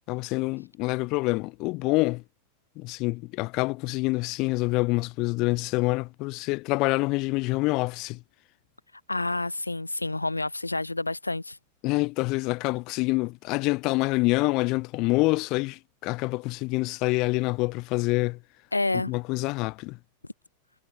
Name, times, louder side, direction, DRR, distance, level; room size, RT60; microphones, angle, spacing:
voice 1, 0.1-2.2 2.8-8.2 11.8-18.4 19.1-20.0, left 24 dB, 40° left, 0.8 m, -26 dB
voice 2, 9.1-11.6 18.7-19.1, left 2 dB, 85° left, 0.6 m, -28 dB
figure-of-eight pair, 90°, 0 cm